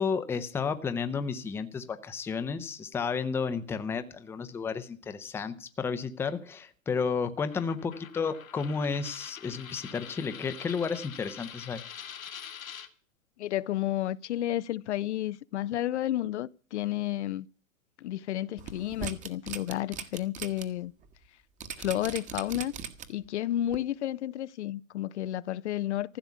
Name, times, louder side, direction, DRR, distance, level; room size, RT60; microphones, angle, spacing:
voice 1, 0.0-11.8, left 5 dB, 5° left, 0.6 m, -32 dB
Coin (dropping), 7.4-12.9, left 8 dB, 85° left, 2.0 m, -45 dB
voice 2, 13.4-17.5 18.0-20.9 21.8-22.7 23.1-26.2, left 13 dB, 60° left, 0.6 m, -31 dB
sound 1, 18.6-20.6 21.0-21.1 21.6-23.3 23.7-23.8, right 7 dB, 20° right, 1.2 m, -39 dB
15.0 x 7.0 x 9.3 m
hypercardioid pair, 135°, 40 cm